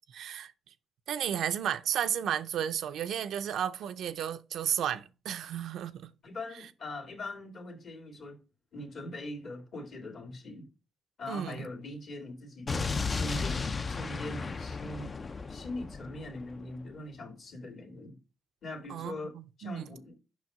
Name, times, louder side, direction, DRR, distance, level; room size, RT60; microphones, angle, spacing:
voice 1, 0.1-0.5 1.1-6.1 11.3-11.6 18.9-19.9, right 9 dB, 75° right, 0.5 m, -33 dB
voice 2, 6.2-8.4 8.7-10.7 11.2-18.2 18.6-19.3 19.6-20.2, left 2 dB, 55° left, 2.2 m, -42 dB
Explosion, 12.7-16.7, left 4 dB, 35° left, 0.4 m, -34 dB
5.7 x 4.7 x 5.4 m
cardioid pair, 90°, 0 cm